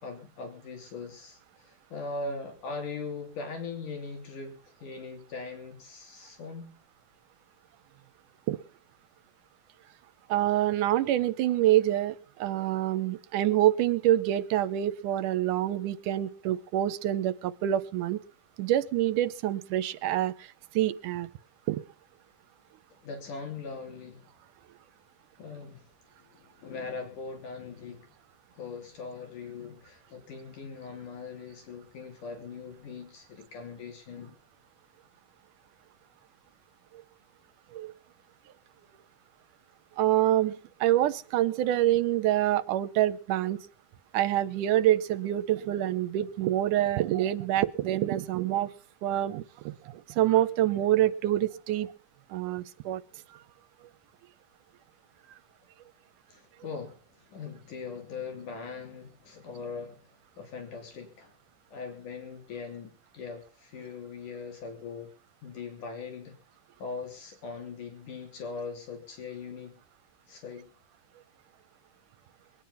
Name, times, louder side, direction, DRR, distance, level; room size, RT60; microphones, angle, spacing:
voice 1, 0.0-6.8 23.0-24.3 25.4-25.9 26.2-28.1 28.5-34.4 56.3-60.0 60.4-61.3 61.7-65.1 65.4-66.4 66.8-69.8 70.3-70.7, left 4 dB, 75° left, 3 dB, 4.7 m, -40 dB
voice 2, 10.3-18.2 18.6-21.3 21.7-21.8 37.7-37.9 40.0-43.6 44.1-48.7 49.0-51.9 52.3-53.0, right 13 dB, 80° right, 14 dB, 2.4 m, -26 dB
22.0 x 10.5 x 5.6 m, 0.42 s
omnidirectional pair, 3.7 m